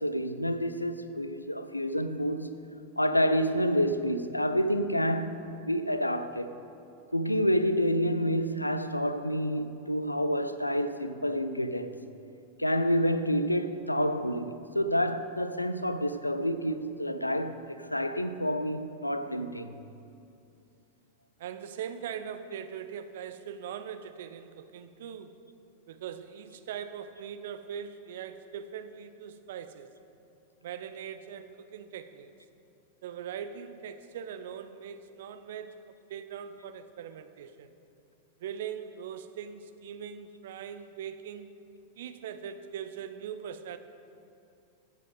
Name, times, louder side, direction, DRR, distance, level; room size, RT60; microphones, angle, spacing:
voice 1, 0.0-2.6 3.0-6.6 7.1-12.0 12.6-19.7, equal, 85° left, 0.5 m, -28 dB
voice 2, 21.4-25.4 25.9-29.9 30.6-32.3 33.0-37.7 38.4-41.5 42.0-43.8, right 8 dB, 55° right, 0.6 m, -41 dB
15.0 x 7.6 x 5.3 m
figure-of-eight pair, 90°, 0 cm